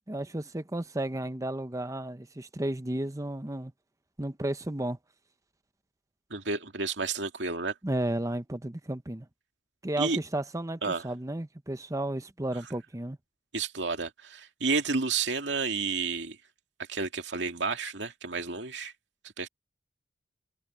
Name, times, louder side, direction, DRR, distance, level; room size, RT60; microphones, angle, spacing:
voice 1, 0.1-3.7 4.2-5.0 7.8-9.3 9.8-13.2, right 1 dB, 20° right, 0.9 m, -33 dB
voice 2, 6.3-7.7 10.0-10.2 10.8-11.0 13.5-16.4 16.9-18.9 19.4-19.5, right 4 dB, 80° right, 2.3 m, -31 dB
head